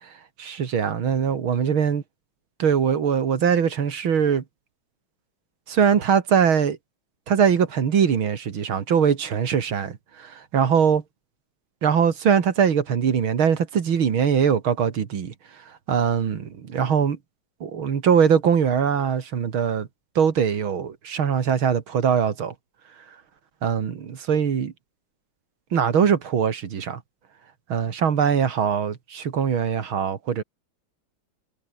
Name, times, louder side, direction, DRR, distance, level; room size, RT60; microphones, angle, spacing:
voice 1, 0.4-2.0 2.6-4.4 5.7-6.8 7.3-11.0 11.8-15.3 15.9-17.2 17.6-19.9 20.2-22.5 23.6-24.7 25.7-27.0 27.7-30.4, right 7 dB, 80° right, 2.7 m, -22 dB
omnidirectional pair, 2.2 m